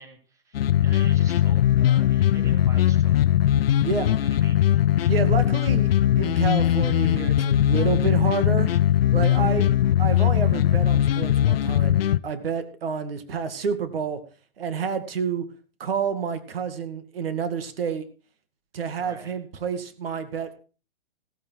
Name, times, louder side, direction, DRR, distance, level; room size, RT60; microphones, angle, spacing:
voice 1, 0.0-3.3 4.1-4.8 9.2-9.6 19.0-19.3, right 2 dB, 10° right, 6 dB, 2.2 m, -46 dB
sound 1, 0.5-12.2, left 11 dB, 80° left, 0.7 m, -20 dB
voice 2, 5.1-8.7 9.1-14.2 14.6-15.4 15.8-18.0 18.7-20.5, right 6 dB, 80° right, 10 dB, 2.2 m, -29 dB
16.0 x 9.3 x 4.7 m, 0.35 s
hypercardioid pair, 155°, 29 cm